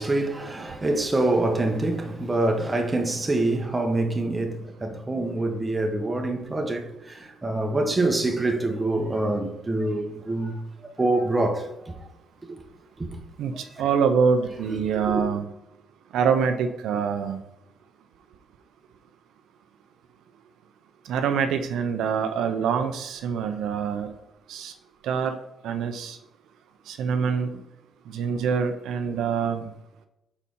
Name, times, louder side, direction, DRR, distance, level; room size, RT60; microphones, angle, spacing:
voice 1, 0.0-10.6 11.0-11.9 13.0-13.1 15.1-15.2, right 2 dB, 20° right, 1.0 m, -25 dB
voice 2, 13.4-15.5 16.1-17.4 21.1-24.1 24.5-24.7 25.0-25.3 25.6-26.2 26.9-27.6 28.1-29.7, right 6 dB, 80° right, 0.5 m, -25 dB
4.9 x 4.2 x 5.4 m
cardioid pair, 90°, 0 cm